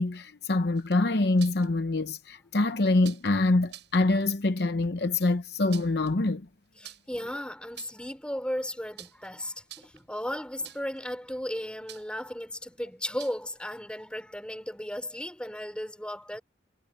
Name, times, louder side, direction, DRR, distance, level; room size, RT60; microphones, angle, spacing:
voice 1, 0.0-6.5, left 2 dB, 55° left, 0.8 m, -25 dB
sound 1, 0.8-1.7 3.0-3.3 3.7-4.0 5.5-6.1 6.8-7.2 7.6-8.1 9.0-9.3 9.6-10.1 10.6-11.0 11.9-12.2 13.2-13.5, right 13 dB, 65° right, 7.9 m, -47 dB
voice 2, 6.8-16.4, equal, 5° left, 5.2 m, -35 dB
head